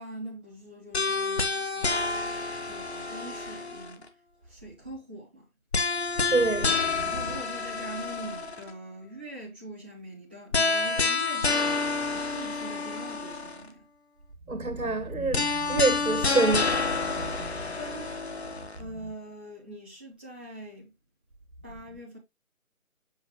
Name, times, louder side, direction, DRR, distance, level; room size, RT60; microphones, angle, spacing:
voice 1, 0.0-4.1 4.4-5.5 7.0-13.8 17.5-18.1 18.8-20.9 21.6-22.2, right 1 dB, 5° right, 0.9 m, -43 dB
sound 1, 0.9-4.1 5.7-8.7 10.5-13.7 15.3-18.8, left 4 dB, 50° left, 1.3 m, -28 dB
voice 2, 6.3-7.1 14.5-16.8 17.2-17.5 19.0-19.1, right 3 dB, 80° right, 2.0 m, -27 dB
7.6 x 5.5 x 2.9 m
figure-of-eight pair, 160°, 42 cm